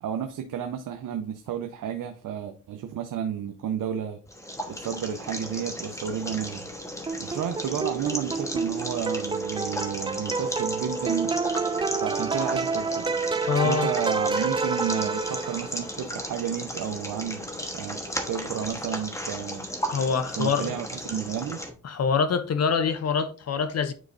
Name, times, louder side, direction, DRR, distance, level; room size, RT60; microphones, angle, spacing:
voice 1, 0.0-4.2 4.7-6.7 7.2-11.3 12.0-13.1 13.6-19.7 20.4-21.6, right 8 dB, 75° right, 0.8 m, -32 dB
sound 1, 4.3-21.7, equal, 10° left, 1.2 m, -35 dB
sound 2, 7.1-15.9, right 4 dB, 15° right, 0.3 m, -29 dB
voice 2, 13.5-13.9 19.9-20.7 21.8-23.9, left 5 dB, 50° left, 0.7 m, -25 dB
9.5 x 4.7 x 2.6 m
cardioid pair, 100°, 32 cm